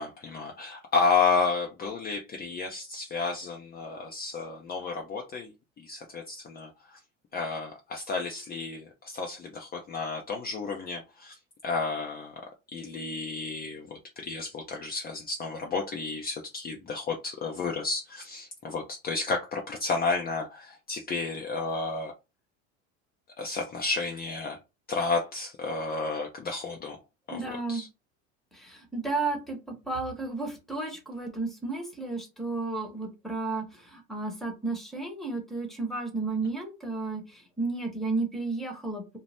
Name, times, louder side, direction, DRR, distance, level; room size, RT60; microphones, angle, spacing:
voice 1, 0.0-7.0 7.3-12.3 12.7-22.1 23.4-24.6 24.9-27.0 27.3-27.4 27.7-27.9, left 4 dB, 25° left, 0.6 m, -31 dB
voice 2, 27.3-27.8 28.5-39.2, right 3 dB, ahead, 1.1 m, -33 dB
2.7 x 2.0 x 3.4 m
supercardioid pair, 110°, 34 cm